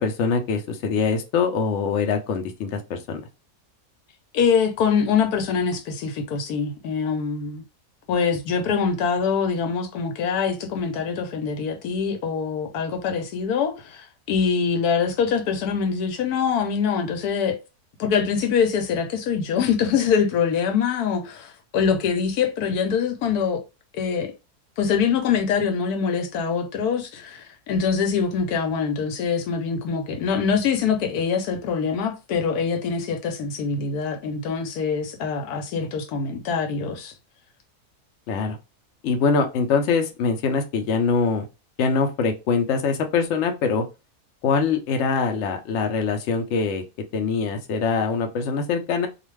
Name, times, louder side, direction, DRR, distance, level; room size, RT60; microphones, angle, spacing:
voice 1, 0.0-3.2 35.8-35.9 38.3-38.6 39.0-41.5 41.8-43.8 44.4-46.8 47.1-49.1, left 5 dB, 65° left, 0.8 m, -23 dB
voice 2, 4.3-7.6 8.1-17.6 18.0-23.6 23.9-24.3 24.8-37.1, left 6 dB, 85° left, 1.2 m, -24 dB
2.4 x 2.4 x 3.1 m
omnidirectional pair, 1.6 m